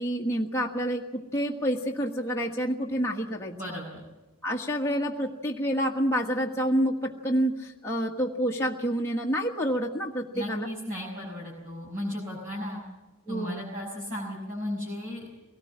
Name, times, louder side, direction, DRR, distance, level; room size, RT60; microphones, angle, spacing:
voice 1, 0.0-3.5 4.4-10.7 13.3-13.6, equal, 15° left, -3 dB, 1.6 m, -28 dB
voice 2, 3.5-4.0 10.3-12.8 13.3-15.3, left 1 dB, 40° right, -5 dB, 6.1 m, -35 dB
23.0 x 18.5 x 7.3 m, 1.1 s
head